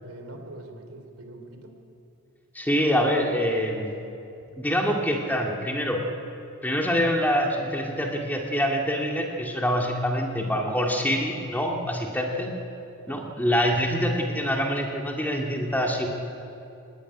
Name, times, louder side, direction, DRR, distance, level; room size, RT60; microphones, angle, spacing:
voice 1, 0.0-1.8 13.1-13.4, right 1 dB, 70° right, 5 dB, 3.8 m, -43 dB
voice 2, 2.5-3.9 4.6-6.0 6.6-12.5 13.1-16.1, equal, 10° left, 0 dB, 2.3 m, -25 dB
25.0 x 18.5 x 10.0 m, 2.7 s
head